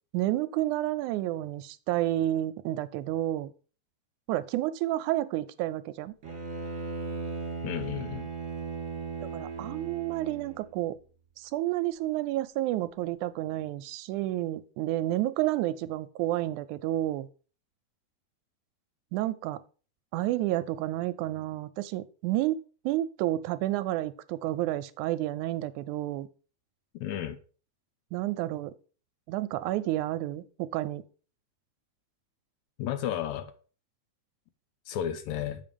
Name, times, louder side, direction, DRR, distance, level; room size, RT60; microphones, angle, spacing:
voice 1, 0.1-3.5 4.3-6.1 9.3-11.0 11.4-17.3 19.1-19.6 20.1-26.3 28.1-28.7 29.3-31.0, right 15 dB, 80° right, 13 dB, 1.9 m, -30 dB
Bowed string instrument, 6.2-10.7, right 4 dB, 30° right, 2.1 m, -37 dB
voice 2, 7.6-8.3 27.0-27.4 32.8-33.5 34.9-35.6, left 10 dB, 80° left, 10 dB, 1.9 m, -32 dB
7.6 x 5.4 x 5.1 m, 0.38 s
omnidirectional pair, 3.6 m